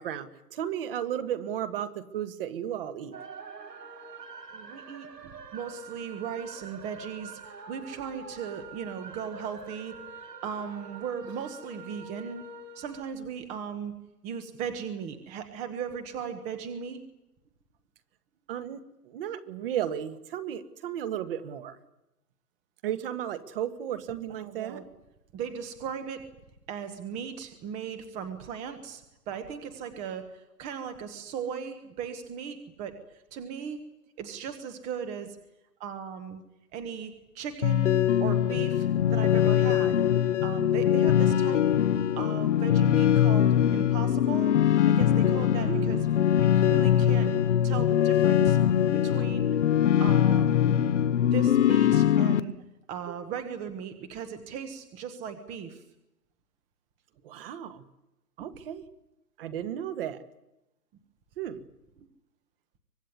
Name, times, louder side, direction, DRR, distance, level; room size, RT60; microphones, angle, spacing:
voice 1, 0.0-3.2 18.5-21.8 22.8-24.8 45.7-46.0 57.2-57.8 58.4-58.8 59.4-60.2 61.4-61.6, right 10 dB, 35° right, 12 dB, 1.7 m, -34 dB
sound 1, 3.1-13.0, right 4 dB, 85° right, 3.7 m, -45 dB
voice 2, 4.5-12.4 12.7-13.9 14.2-17.0 24.3-24.8 25.3-26.2 26.7-32.9 33.3-33.8 34.2-35.4 35.8-36.4 36.7-40.0 40.4-41.6 42.2-44.5 44.8-46.1 46.4-47.3 47.6-48.6 49.0-49.6 50.0-50.8 51.2-52.5 52.9-55.8 62.0-62.1, right 7 dB, 15° right, 9 dB, 1.1 m, -37 dB
sound 2, 37.6-52.4, left 10 dB, 45° left, 0.9 m, -22 dB
24.5 x 20.5 x 9.7 m, 0.90 s
hypercardioid pair, 155°, 47 cm